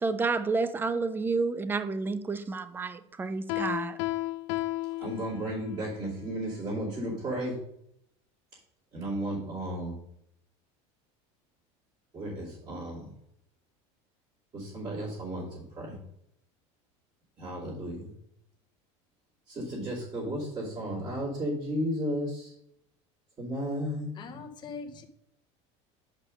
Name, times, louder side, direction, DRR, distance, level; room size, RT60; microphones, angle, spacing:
voice 1, 0.0-4.0, right 4 dB, 15° right, 0.5 m, -30 dB
Piano, 3.5-5.8, left 18 dB, 70° left, 0.4 m, -33 dB
voice 2, 5.0-7.6 8.9-10.0 12.1-13.1 14.5-16.0 17.4-18.1 19.5-22.5 23.4-24.4, equal, 30° right, 2.6 m, -34 dB
voice 3, 24.2-25.0, left 5 dB, 30° left, 1.0 m, -42 dB
7.0 x 5.2 x 5.2 m
supercardioid pair, 140°, 15 cm